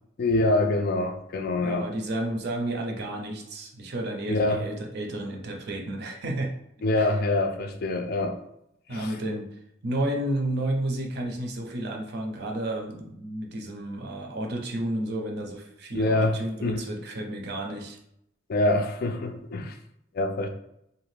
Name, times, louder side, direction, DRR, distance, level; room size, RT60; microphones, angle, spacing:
voice 1, 0.2-1.9 4.3-4.6 6.8-8.4 8.9-9.2 15.9-16.8 18.5-19.7 20.1-20.5, left 2 dB, 50° left, 5 dB, 0.4 m, -25 dB
voice 2, 1.6-6.5 7.0-7.1 8.9-9.5 9.8-18.0 19.6-19.7, right 1 dB, 55° right, 2 dB, 0.5 m, -31 dB
2.7 x 2.3 x 3.2 m, 0.78 s
head